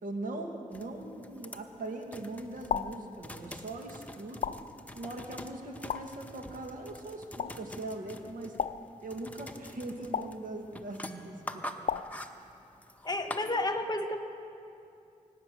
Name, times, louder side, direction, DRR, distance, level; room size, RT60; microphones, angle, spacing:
voice 1, 0.0-4.6 5.0-8.6 9.0-11.7, right 2 dB, 75° right, 2 dB, 1.8 m, -40 dB
sound 1, 0.7-13.5, left 1 dB, 10° left, 0.9 m, -46 dB
sound 2, 2.7-3.1 4.4-4.8 5.9-6.2 7.4-7.7 8.6-9.0 10.1-10.5 11.9-12.3, left 7 dB, 60° left, 0.4 m, -34 dB
voice 2, 13.0-14.2, left 2 dB, 30° left, 6 dB, 1.2 m, -31 dB
24.5 x 8.6 x 6.3 m, 2.6 s
cardioid pair, 75°, 14 cm